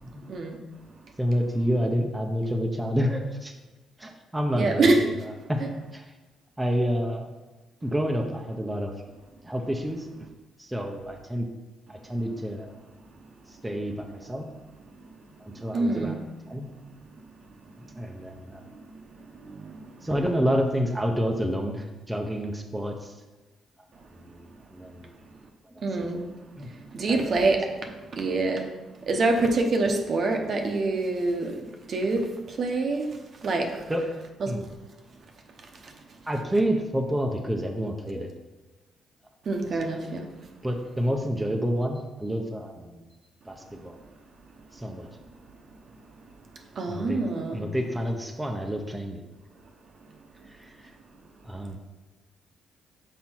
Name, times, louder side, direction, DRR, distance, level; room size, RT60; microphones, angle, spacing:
voice 1, 1.2-3.5 4.0-5.2 5.5-5.7 5.9-6.0 6.6-7.3 7.8-8.9 9.4-10.1 10.6-11.5 11.9-12.7 13.6-14.5 15.4-16.2 16.5-16.7 17.8-18.6 20.0-23.1 24.2-25.1 25.7-25.8 26.1-26.2 26.6-26.7 27.1-27.4 33.9-34.0 34.5-34.7 36.3-38.3 40.6-43.0 43.5-44.0 44.7-45.1 46.9-47.2 47.5-49.2 50.6-50.7 51.4-51.8, equal, 10° right, 2 dB, 0.8 m, -29 dB
voice 2, 4.5-5.0 15.7-16.2 25.8-26.2 26.9-27.6 28.2-28.6 29.1-31.5 31.9-32.2 32.6-33.0 33.4-33.7 34.4-34.5 39.5-40.2 46.8-47.6, right 3 dB, 55° right, 3 dB, 0.9 m, -25 dB
5.7 x 5.0 x 4.4 m, 1.1 s
cardioid pair, 90°, 0 cm